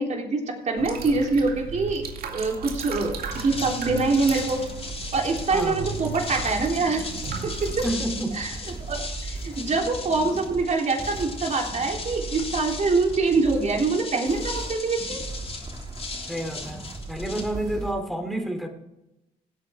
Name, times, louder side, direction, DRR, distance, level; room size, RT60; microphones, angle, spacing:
voice 1, 0.0-4.6 5.1-7.1 7.4-7.9 8.3-8.5 8.9-15.2, right 3 dB, 45° right, 1 dB, 3.5 m, -25 dB
sound 1, 0.8-7.9, right 6 dB, 70° right, 2.2 m, -36 dB
sound 2, 2.6-17.9, right 3 dB, 25° right, 2.1 m, -38 dB
sound 3, 3.2-18.0, left 3 dB, 40° left, 3.3 m, -38 dB
voice 2, 5.5-5.9 7.8-8.4 16.3-18.7, right 1 dB, ahead, 4 dB, 2.9 m, -29 dB
16.5 x 8.5 x 3.6 m, 0.91 s
cardioid pair, 75°, 16 cm